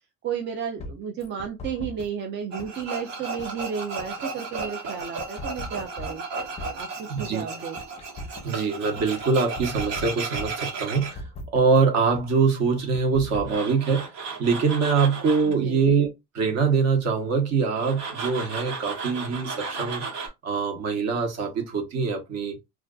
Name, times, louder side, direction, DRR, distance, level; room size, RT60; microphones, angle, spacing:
voice 1, 0.2-6.2 6.7-7.8 15.4-15.8, right 7 dB, 35° right, 0.4 m, -33 dB
sound 1, 0.8-2.2 2.6-4.7 5.0-7.3 7.6-9.2 9.5-11.8 12.1-12.2 12.5-13.6, left 1 dB, 20° left, 0.5 m, -39 dB
Tools, 2.5-11.1 13.3-15.5 17.8-20.3, right 4 dB, 80° right, 1.3 m, -34 dB
voice 2, 7.1-7.4 8.4-11.2 11.5-14.1 14.4-16.1 16.3-22.6, right 5 dB, 50° right, 0.9 m, -24 dB
2.4 x 2.3 x 2.3 m
cardioid pair, 120°, 33 cm